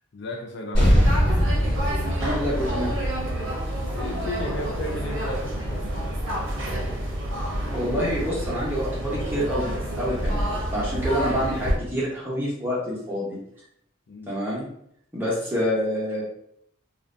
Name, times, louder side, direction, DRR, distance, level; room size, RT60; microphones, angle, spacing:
voice 1, 0.1-1.1 3.9-5.9 14.1-14.3, left 1 dB, 55° left, 1 dB, 0.4 m, -34 dB
sound 1, 0.7-5.5, equal, 25° left, 1.3 m, -23 dB
sound 2, 0.9-11.8, equal, 75° right, 0.6 m, -28 dB
voice 2, 2.2-2.9 7.7-13.4 14.3-14.7 15.1-16.2, equal, 10° right, -7 dB, 0.8 m, -27 dB
2.5 x 2.1 x 2.5 m, 0.71 s
head